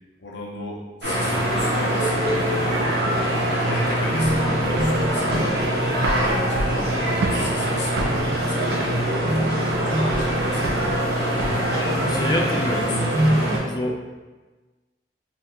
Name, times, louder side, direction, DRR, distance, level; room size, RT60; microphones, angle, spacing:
voice 1, 0.2-2.5 3.2-3.4 3.6-5.5 6.0-10.9, left 1 dB, 75° left, -3 dB, 0.7 m, -34 dB
sound 1, 1.0-13.6, right 1 dB, 65° right, 0.7 m, -22 dB
sound 2, 4.2-11.7, right 2 dB, 85° right, 0.4 m, -31 dB
voice 2, 11.7-13.1 13.6-14.0, left 1 dB, 25° left, 0 dB, 0.3 m, -27 dB
2.8 x 2.5 x 3.4 m, 1.3 s
head